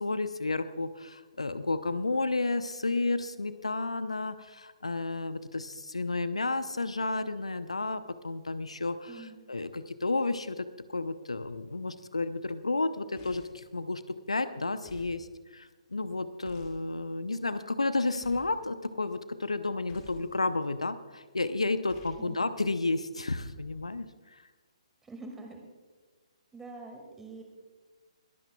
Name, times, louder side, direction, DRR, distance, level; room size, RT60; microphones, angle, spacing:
voice 1, 0.0-10.7 10.9-24.4, left 3 dB, 75° left, 12 dB, 0.7 m, -32 dB
voice 2, 9.1-9.4 22.2-22.4 25.0-25.6 26.5-27.4, right 2 dB, 10° right, 2 dB, 2.1 m, -45 dB
sound 1, 13.2-13.6 14.8-15.2 16.4-16.8 18.2-18.6 19.9-20.3 21.9-22.3, left 3 dB, 25° left, 2.5 m, -52 dB
21.5 x 14.5 x 2.3 m, 1.3 s
figure-of-eight pair, 130°, 3 cm